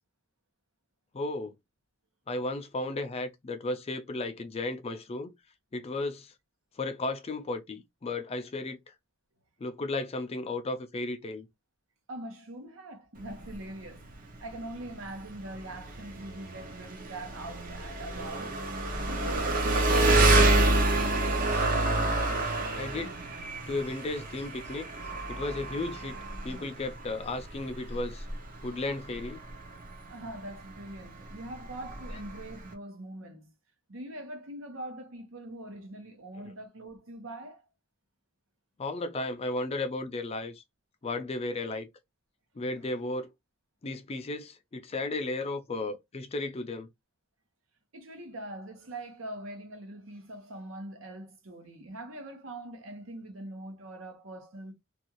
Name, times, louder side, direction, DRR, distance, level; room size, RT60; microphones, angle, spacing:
voice 1, 1.1-1.5 2.3-5.3 5.7-6.3 6.8-8.8 9.6-11.5 22.8-23.1 23.7-24.9 25.3-26.2 26.4-28.2 28.6-29.4 38.8-40.6 41.0-41.9 42.6-43.3 43.8-46.9, left 2 dB, 30° left, 0.4 m, -34 dB
voice 2, 12.1-18.6 19.0-20.7 30.1-33.5 33.9-37.7 42.8-42.9 47.9-54.7, right 1 dB, 70° right, 0.9 m, -43 dB
Engine, 13.2-32.7, right 2 dB, 40° right, 0.7 m, -28 dB
2.6 x 2.3 x 2.9 m
head